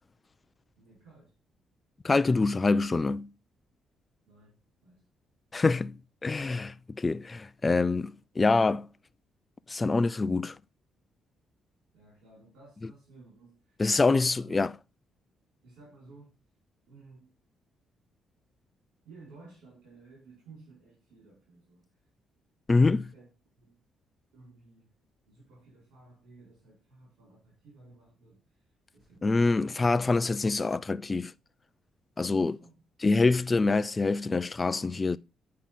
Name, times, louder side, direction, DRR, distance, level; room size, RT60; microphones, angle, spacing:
voice 1, 0.8-1.3 4.3-5.1 11.9-14.7 15.6-16.3 16.9-17.4 19.0-22.1 22.7-23.3 23.6-23.8 24.3-30.7 32.3-32.8, right 3 dB, 90° right, 4.5 m, -55 dB
voice 2, 2.0-3.3 5.5-5.9 6.2-8.9 9.7-10.6 13.8-14.7 22.7-23.0 29.2-31.3 32.2-32.6 33.0-35.2, left 3 dB, 25° left, 0.4 m, -25 dB
8.6 x 5.7 x 3.7 m
cardioid pair, 90°, 0 cm